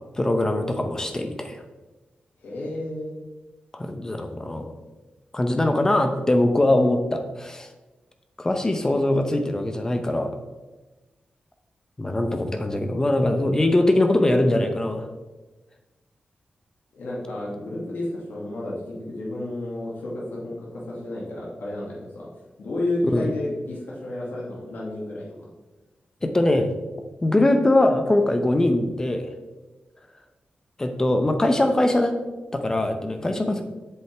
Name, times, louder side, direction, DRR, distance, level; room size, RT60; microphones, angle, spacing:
voice 1, 0.1-1.6 3.7-4.7 5.3-7.7 8.4-10.3 12.0-15.1 23.1-23.3 26.2-26.7 27.2-29.3 30.8-32.2 32.5-33.6, left 1 dB, 20° left, 6 dB, 0.7 m, -22 dB
voice 2, 2.4-3.1 16.9-22.3 22.6-25.3 33.2-33.4, left 1 dB, 85° left, -5 dB, 2.1 m, -31 dB
8.0 x 7.5 x 3.4 m, 1.2 s
wide cardioid pair, 150°, 3 cm